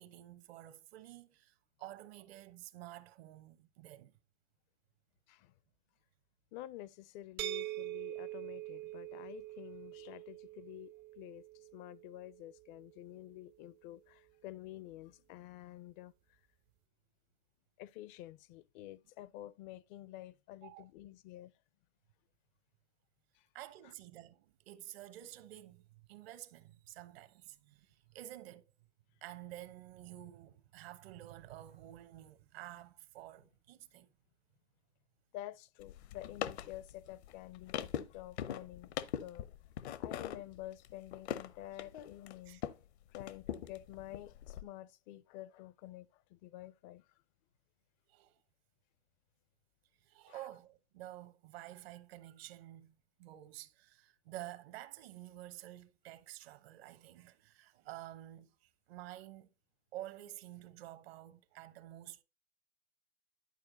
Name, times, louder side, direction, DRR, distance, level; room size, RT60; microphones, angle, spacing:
voice 1, 0.0-4.2 20.6-20.8 23.5-28.7 29.2-34.1 42.4-42.6 48.1-48.4 50.0-59.5 59.9-62.2, right 14 dB, 60° right, 1.1 m, -51 dB
voice 2, 6.5-16.1 17.8-21.5 35.3-38.9 39.2-39.5 40.0-42.6 43.1-47.0 50.3-50.4, left 14 dB, 45° left, 0.5 m, -49 dB
sound 1, 7.4-13.2, right 15 dB, 30° right, 0.4 m, -45 dB
sound 2, 35.8-42.8 43.1-44.6, left 10 dB, 70° left, 0.8 m, -42 dB
11.0 x 4.5 x 3.9 m
hypercardioid pair, 110°, 34 cm